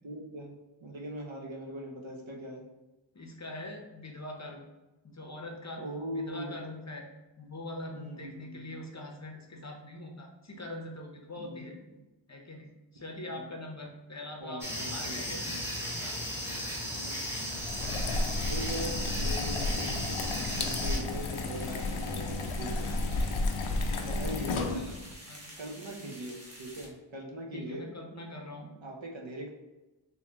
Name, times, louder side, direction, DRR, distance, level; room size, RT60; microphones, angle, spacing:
voice 1, 0.0-2.7 5.8-6.5 7.9-8.8 11.3-11.7 13.4-13.5 14.4-15.2 17.0-17.2 18.5-22.9 23.9-24.6 25.6-27.9 28.8-29.5, right 1 dB, 70° right, -1 dB, 0.8 m, -41 dB
voice 2, 3.1-4.6 5.0-5.8 6.1-7.1 7.4-11.7 12.3-14.6 14.9-15.6 16.0-16.2 19.0-19.1 23.7-24.1 24.7-25.0 25.3-25.6 27.5-28.7, left 1 dB, 35° left, 1 dB, 0.6 m, -43 dB
sound 1, 14.6-21.0, equal, 5° right, 1.0 m, -35 dB
sound 2, 17.5-25.1, left 2 dB, 80° left, 0.5 m, -32 dB
sound 3, 21.1-26.9, equal, 30° right, 0.9 m, -50 dB
3.9 x 2.7 x 2.8 m, 1.1 s
wide cardioid pair, 45°, 48 cm